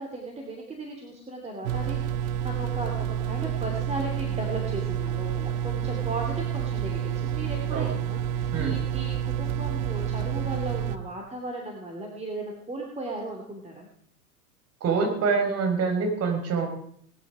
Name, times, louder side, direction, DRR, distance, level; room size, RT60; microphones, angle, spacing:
voice 1, 0.0-2.0 2.2-13.9, right 2 dB, 15° right, 1 dB, 2.7 m, -36 dB
sound 1, 1.6-11.0, right 9 dB, 60° right, 1.1 m, -29 dB
voice 2, 14.8-16.7, right 5 dB, 30° right, 4 dB, 4.7 m, -25 dB
19.0 x 11.0 x 4.9 m, 0.64 s
hypercardioid pair, 100°, 46 cm